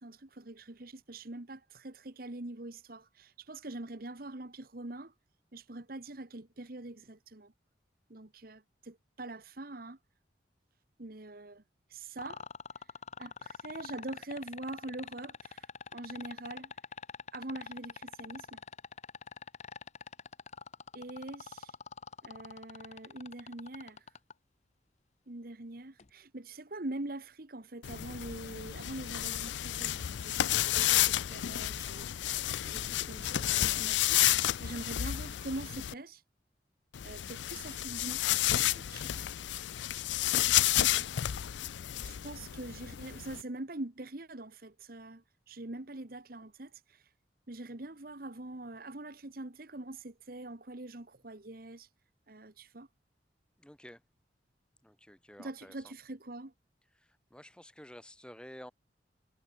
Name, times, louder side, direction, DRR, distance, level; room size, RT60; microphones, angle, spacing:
voice 1, 0.0-5.1 5.5-7.5 8.1-10.0 11.0-11.6 11.9-12.4 13.2-15.7 15.9-16.7 17.3-18.6 20.9-21.7 22.2-24.0 25.3-32.1 32.6-36.2 37.0-38.2 38.5-39.3 40.7-41.1 42.0-47.0 47.5-51.9 52.3-52.9 55.4-56.5, right 2 dB, 55° right, 1.4 m, -44 dB
sound 1, 12.2-24.3 26.0-26.1, left 5 dB, 40° left, 0.7 m, -44 dB
sound 2, 27.8-35.9 36.9-43.4, left 13 dB, 85° left, 0.4 m, -31 dB
voice 2, 53.6-54.0 54.8-55.9 57.3-58.7, equal, 5° left, 2.2 m, -51 dB
head